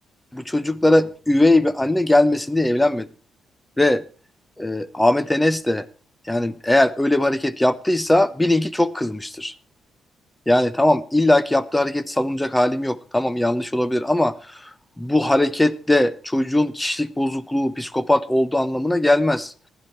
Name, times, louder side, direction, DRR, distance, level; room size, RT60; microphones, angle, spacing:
voice 1, 0.3-3.1 3.8-4.0 4.6-5.9 6.3-9.5 10.5-14.3 15.0-19.5, left 1 dB, 10° left, 1.0 m, -20 dB
15.5 x 11.0 x 4.4 m
cardioid pair, 90°, 0 cm